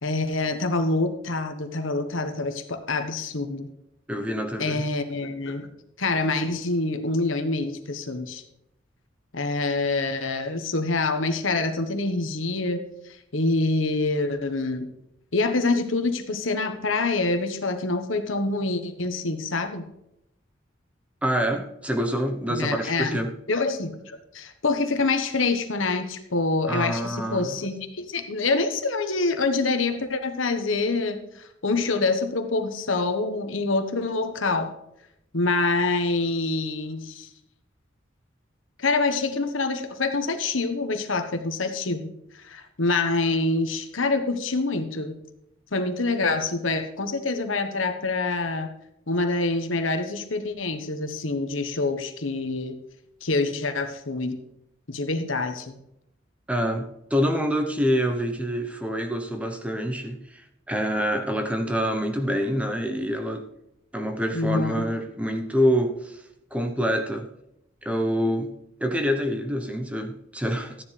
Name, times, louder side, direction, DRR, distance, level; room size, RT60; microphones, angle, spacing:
voice 1, 0.0-3.7 4.6-5.7 6.0-8.4 9.3-12.9 13.3-14.9 15.3-19.8 22.5-23.2 23.5-34.7 35.3-37.3 38.8-45.1 45.7-48.7 49.1-52.7 53.2-54.4 54.9-55.7 64.3-64.8, left 3 dB, 80° left, 7 dB, 1.3 m, -26 dB
voice 2, 4.1-4.8 21.2-23.3 26.7-27.5 56.5-60.4 60.7-63.5 63.9-66.2 66.5-67.3 67.8-68.5 68.8-70.8, equal, 5° right, 6 dB, 0.9 m, -26 dB
14.0 x 10.0 x 3.4 m, 0.81 s
head